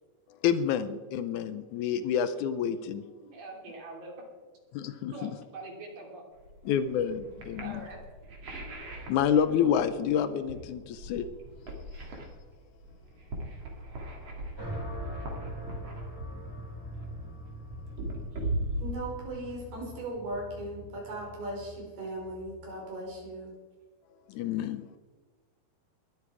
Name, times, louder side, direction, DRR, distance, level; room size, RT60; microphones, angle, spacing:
voice 1, 0.4-3.0 4.7-5.4 6.6-7.9 8.8-11.3 24.3-25.0, left 8 dB, 80° left, 12 dB, 1.7 m, -28 dB
voice 2, 2.9-4.2 5.1-6.2 7.6-8.0, right 2 dB, 65° right, 0 dB, 4.7 m, -44 dB
sound 1, 6.4-19.8, right 1 dB, 45° right, 3.6 m, -39 dB
sound 2, 14.6-22.8, right 1 dB, 5° right, 3.5 m, -43 dB
sound 3, 15.5-23.3, left 7 dB, 25° left, 3.9 m, -50 dB
voice 3, 18.8-23.5, right 1 dB, 90° right, -1 dB, 7.1 m, -38 dB
21.0 x 13.5 x 4.9 m, 1.4 s
omnidirectional pair, 4.3 m